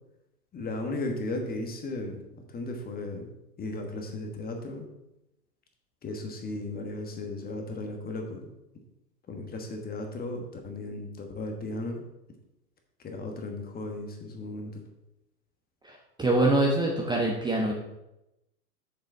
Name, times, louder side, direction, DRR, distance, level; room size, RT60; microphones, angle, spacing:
voice 1, 0.5-3.3 3.6-4.8 6.0-8.5 9.3-12.0 13.0-14.8, left 2 dB, 20° left, 3 dB, 1.3 m, -35 dB
voice 2, 16.2-17.7, right 2 dB, 10° right, -1 dB, 1.0 m, -24 dB
6.8 x 6.6 x 4.6 m, 0.90 s
hypercardioid pair, 105°, 48 cm